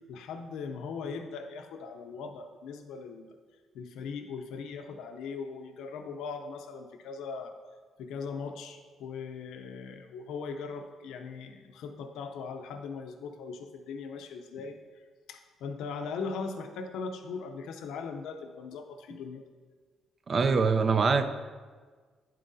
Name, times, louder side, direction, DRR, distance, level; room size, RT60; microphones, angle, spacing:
voice 1, 0.1-3.3 3.7-7.6 8.0-14.8 15.3-19.4, left 5 dB, 85° left, 6 dB, 0.6 m, -39 dB
voice 2, 20.3-21.3, right 4 dB, 45° right, 10 dB, 0.5 m, -24 dB
9.4 x 7.5 x 2.7 m, 1.5 s
cardioid pair, 90°, 0 cm